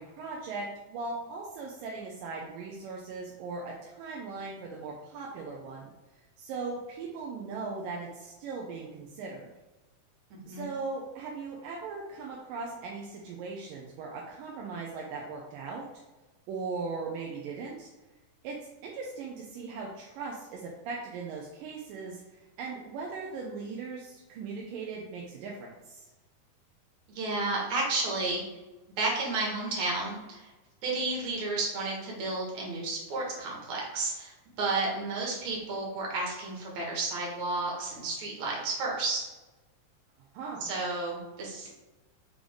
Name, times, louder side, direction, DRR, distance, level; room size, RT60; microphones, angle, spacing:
voice 1, 0.0-5.9 6.4-9.5 10.5-15.8 16.5-17.9 18.4-18.6 18.8-26.1 40.3-40.7, right 4 dB, 80° right, -2 dB, 2.5 m, -39 dB
voice 2, 10.3-10.7 27.1-28.4 29.0-30.5 30.8-39.2 40.6-41.7, right 3 dB, 60° right, -2 dB, 3.0 m, -32 dB
6.5 x 5.2 x 3.8 m, 1.1 s
omnidirectional pair, 3.9 m